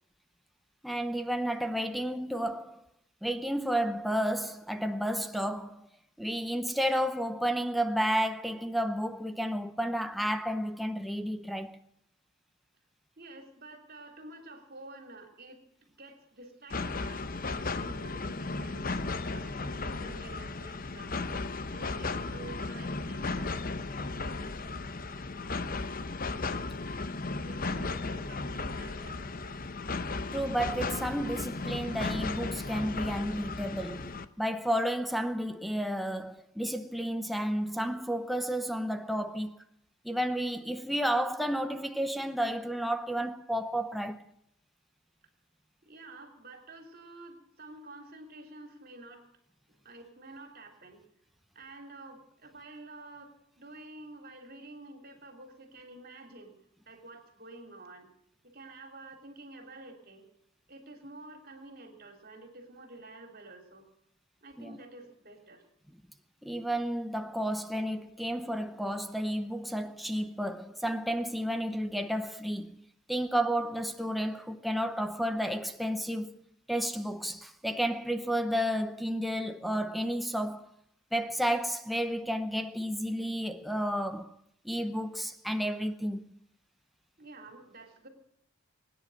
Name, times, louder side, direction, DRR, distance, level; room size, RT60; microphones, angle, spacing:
voice 1, 0.8-2.8 3.2-5.9 6.2-11.8 30.3-39.6 40.0-44.3 64.6-64.8 66.4-72.8 73.1-76.4 76.7-80.7 81.1-84.4 84.6-86.3, equal, ahead, 0.7 m, -31 dB
voice 2, 13.2-21.1 21.7-23.5 27.4-29.6 45.8-49.2 49.8-51.0 51.5-53.3 53.6-56.6 56.8-58.1 58.4-60.3 60.7-63.9 64.4-65.6 67.8-67.9 87.2-88.1, right 2 dB, 45° right, 3.4 m, -49 dB
sound 1, 16.7-34.3, left 3 dB, 40° left, 0.8 m, -35 dB
22.5 x 10.0 x 6.4 m
head